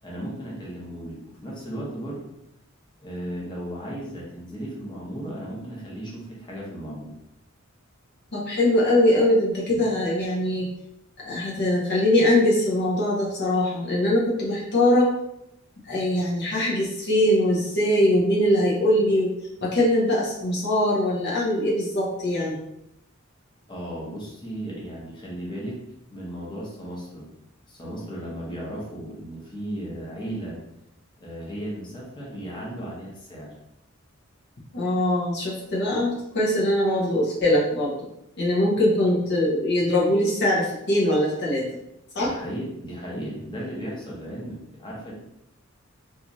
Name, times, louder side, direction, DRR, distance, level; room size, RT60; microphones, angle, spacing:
voice 1, 0.0-2.3 3.0-7.1 23.7-25.8 26.1-27.3 27.7-30.6 31.2-33.5 42.2-45.1, right 1 dB, 20° left, -5 dB, 0.8 m, -35 dB
voice 2, 8.3-10.7 11.2-15.1 15.8-19.3 19.6-22.6 34.7-37.9 38.4-41.6 42.1-42.3, left 1 dB, 55° left, -5 dB, 0.6 m, -22 dB
2.9 x 2.4 x 2.6 m, 0.82 s
head